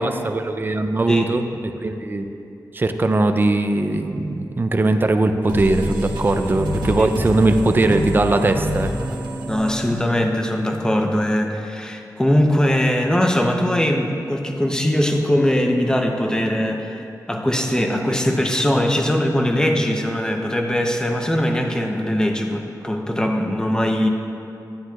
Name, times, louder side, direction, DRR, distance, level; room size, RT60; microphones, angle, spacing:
voice 1, 0.0-2.3 2.7-8.9, right 2 dB, 30° right, 7 dB, 0.4 m, -20 dB
sound 1, 5.5-10.8, equal, 90° right, 1.2 m, -28 dB
voice 2, 9.4-24.1, left 1 dB, 10° left, 2 dB, 0.7 m, -21 dB
11.5 x 9.4 x 2.3 m, 2.7 s
wide cardioid pair, 110°, 7 cm